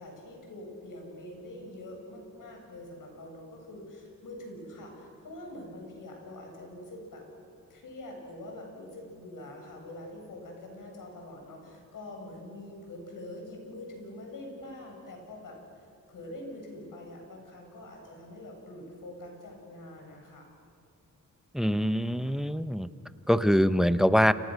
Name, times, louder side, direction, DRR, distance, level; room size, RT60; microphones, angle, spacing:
voice 1, 0.0-7.2 7.7-20.5, left 1 dB, 70° left, 1 dB, 7.6 m, -44 dB
voice 2, 21.5-22.9 23.3-24.3, equal, ahead, 12 dB, 0.8 m, -24 dB
30.0 x 28.0 x 6.5 m, 2.3 s
wide cardioid pair, 115°, 33 cm